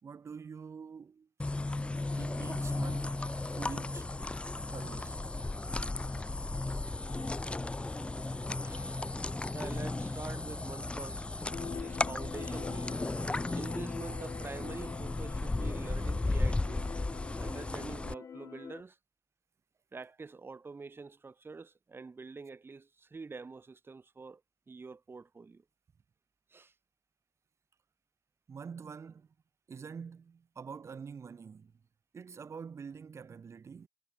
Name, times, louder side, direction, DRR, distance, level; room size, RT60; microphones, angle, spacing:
voice 1, 0.0-1.3 2.2-3.2 3.6-4.1 4.7-5.2 28.5-29.3 29.7-31.7 32.1-33.9, right 6 dB, 60° right, 2.3 m, -46 dB
sound 1, 1.4-18.1, left 2 dB, 20° left, 0.4 m, -35 dB
voice 2, 8.6-9.1 9.5-11.3 11.6-13.0 13.5-16.9 17.4-19.0 19.9-24.4 24.7-25.6 26.5-26.7, right 4 dB, 45° right, 2.1 m, -46 dB
sound 2, 11.5-18.8, left 7 dB, 60° left, 0.7 m, -45 dB
supercardioid pair, 45°, 5 cm